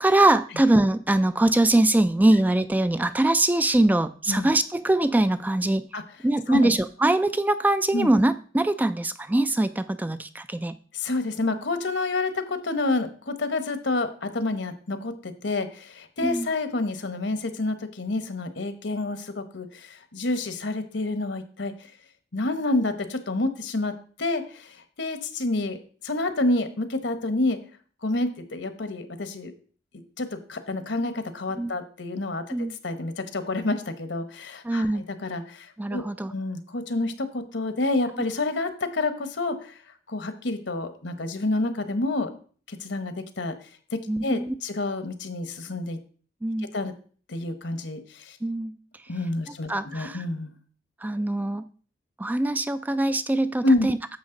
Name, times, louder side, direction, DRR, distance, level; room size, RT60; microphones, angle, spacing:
voice 1, 0.0-5.9 6.2-10.8 16.2-16.5 31.6-31.7 32.5-32.8 34.6-35.0 35.8-36.3 44.1-44.5 46.4-46.7 48.4-48.7 49.7-50.2 51.0-51.6 52.2-54.0, right 1 dB, 10° right, 12 dB, 0.3 m, -22 dB
voice 2, 10.9-21.7 22.3-23.9 24.2-25.8 26.0-27.6 28.0-29.5 29.9-32.5 32.8-36.0 36.3-39.8 40.1-42.4 42.7-43.5 43.9-46.0 46.7-46.9 47.3-48.4 49.1-50.5 53.6-53.9, left 2 dB, 75° left, 9 dB, 1.1 m, -28 dB
10.5 x 7.1 x 3.8 m, 0.43 s
head